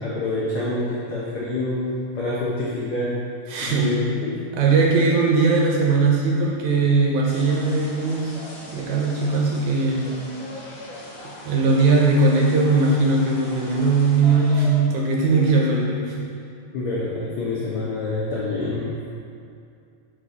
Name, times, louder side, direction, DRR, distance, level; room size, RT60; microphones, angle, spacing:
voice 1, 0.0-3.2 3.6-4.5 16.7-18.9, left 2 dB, 80° left, -6 dB, 1.2 m, -27 dB
voice 2, 3.5-4.0 4.6-8.4 8.7-10.2 11.4-16.3, right 3 dB, 75° right, -2 dB, 2.0 m, -19 dB
sound 1, 7.2-14.8, left 1 dB, 55° left, 1.6 m, -40 dB
6.4 x 5.3 x 4.0 m, 2.5 s
omnidirectional pair, 3.7 m